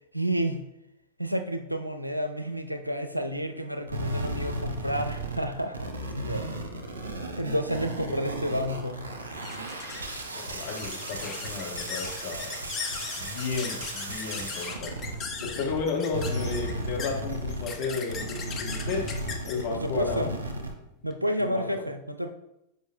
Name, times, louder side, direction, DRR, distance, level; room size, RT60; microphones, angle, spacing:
voice 1, 0.1-0.6 1.2-6.5 7.4-9.1 19.7-20.3 21.0-22.3, equal, 90° right, 8 dB, 0.5 m, -30 dB
sound 1, 3.9-15.8 16.1-20.7, right 1 dB, 70° right, 1.0 m, -35 dB
sound 2, 9.3-21.2, left 5 dB, 25° left, 0.9 m, -39 dB
voice 2, 10.3-12.5 13.2-14.9 15.4-19.0 19.4-20.3 21.4-21.8, left 4 dB, 50° left, 0 dB, 1.5 m, -33 dB
7.3 x 5.0 x 2.7 m, 0.84 s
figure-of-eight pair, 90°, 0 cm